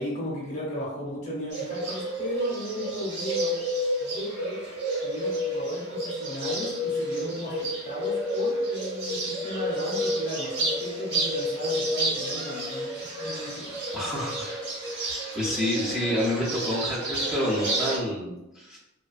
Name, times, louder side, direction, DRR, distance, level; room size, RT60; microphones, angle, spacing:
voice 1, 0.0-3.6 4.0-4.6 5.0-13.7, left 1 dB, 35° left, -4 dB, 0.8 m, -35 dB
Bird, 1.5-18.0, right 1 dB, 55° right, 0.9 m, -30 dB
voice 2, 13.9-14.6 15.3-18.8, equal, 5° right, -9 dB, 0.4 m, -28 dB
2.5 x 2.3 x 2.4 m, 0.95 s
head